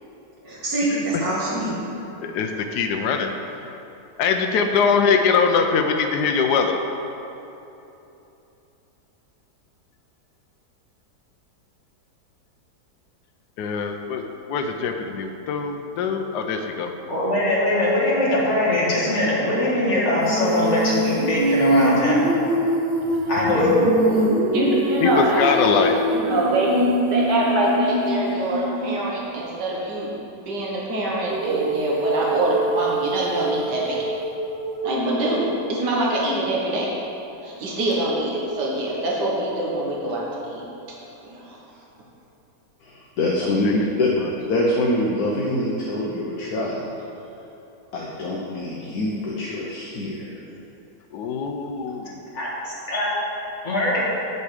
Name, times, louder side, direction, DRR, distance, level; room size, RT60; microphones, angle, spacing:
voice 1, 0.4-1.9 23.5-24.2, equal, 60° right, -8 dB, 2.7 m, -23 dB
voice 2, 2.2-3.3 4.2-6.8 13.6-16.9 25.0-25.9 43.6-43.7 44.2-44.3 51.1-52.1, left 5 dB, 80° left, 5 dB, 1.2 m, -22 dB
voice 3, 17.1-22.3 23.3-23.7 51.9-52.0 52.3-52.5 52.9-53.1 53.6-54.0, left 1 dB, 45° left, -6 dB, 2.2 m, -21 dB
Female singing, 20.2-29.1 31.3-35.5, right 1 dB, 45° right, 1.0 m, -24 dB
voice 4, 23.1-23.6 24.5-26.8 27.1-34.1 34.8-36.9 37.4-40.6 41.2-41.6, right 1 dB, 85° right, -4 dB, 1.9 m, -24 dB
voice 5, 42.8-44.1 44.5-46.9 47.9-50.4, left 1 dB, 65° left, -3 dB, 1.4 m, -25 dB
8.2 x 7.1 x 4.9 m, 3.0 s
omnidirectional pair, 1.8 m